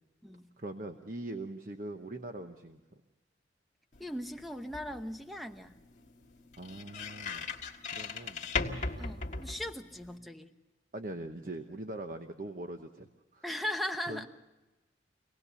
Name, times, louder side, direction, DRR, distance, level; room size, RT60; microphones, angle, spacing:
voice 1, 0.6-2.8 6.6-7.5 7.9-8.5 10.9-13.4 14.1-14.3, right 1 dB, 45° right, 5 dB, 1.0 m, -42 dB
sound 1, 3.9-10.2, left 4 dB, 40° left, 1.7 m, -39 dB
voice 2, 4.0-5.8 9.0-10.5 13.4-14.3, left 1 dB, ahead, 7 dB, 0.9 m, -38 dB
25.5 x 18.5 x 6.9 m, 1.1 s
head